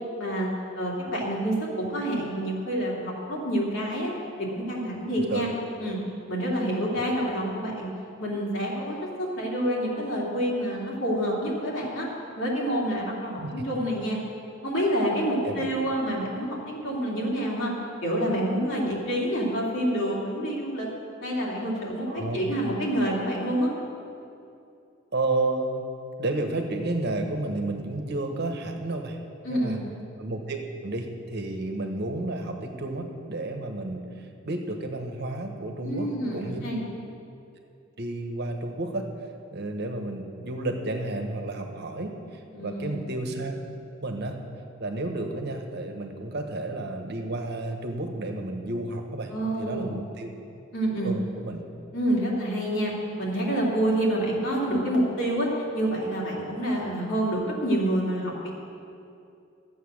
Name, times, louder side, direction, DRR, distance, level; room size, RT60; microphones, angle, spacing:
voice 1, 0.2-4.1 4.4-5.5 5.8-6.0 6.3-7.9 8.2-12.1 12.4-14.2 14.6-17.7 18.0-20.9 21.2-23.7 29.4-29.8 35.8-36.8 42.5-43.0 49.3-50.3 50.7-51.1 51.9-58.5, right 1 dB, 65° left, -4 dB, 2.9 m, -27 dB
voice 2, 22.1-22.4 25.1-25.8 26.2-29.2 29.5-29.8 30.2-36.6 38.0-39.0 39.5-43.6 44.0-44.4 44.8-49.3 49.6-50.3 51.0-51.6, right 2 dB, 55° right, 4 dB, 1.2 m, -31 dB
13.5 x 8.0 x 6.4 m, 2.6 s
head